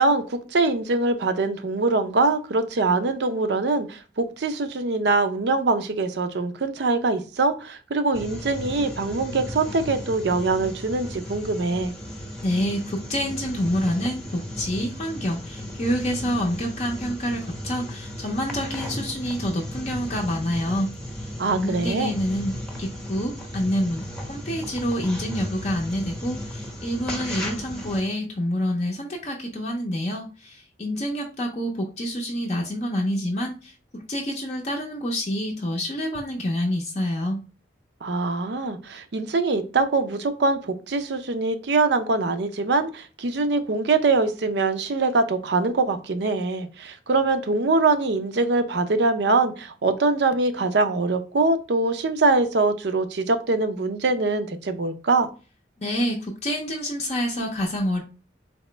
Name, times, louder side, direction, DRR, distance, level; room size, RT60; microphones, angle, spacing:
voice 1, 0.0-11.9 21.4-22.2 38.0-55.3, right 3 dB, 65° right, 0.5 m, -23 dB
sound 1, 8.1-28.0, equal, 5° left, 0.8 m, -35 dB
voice 2, 12.4-20.9 21.2-37.4 55.8-58.0, equal, 35° left, 0.5 m, -27 dB
4.1 x 2.9 x 3.2 m
head